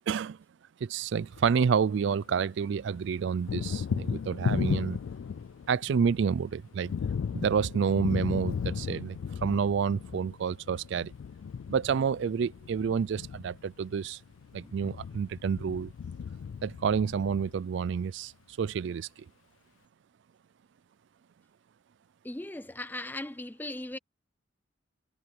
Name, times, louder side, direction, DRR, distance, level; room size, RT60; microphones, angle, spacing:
voice 1, 0.1-0.4 0.8-5.0 5.7-6.9 7.3-11.1 11.7-14.2 14.5-15.9 16.6-18.3 18.6-19.1, right 6 dB, 65° right, 0.4 m, -29 dB
Thunder, 1.2-2.4 2.7-18.0, left 6 dB, 80° left, 0.3 m, -36 dB
voice 2, 22.2-24.0, left 1 dB, 10° left, 0.6 m, -38 dB
head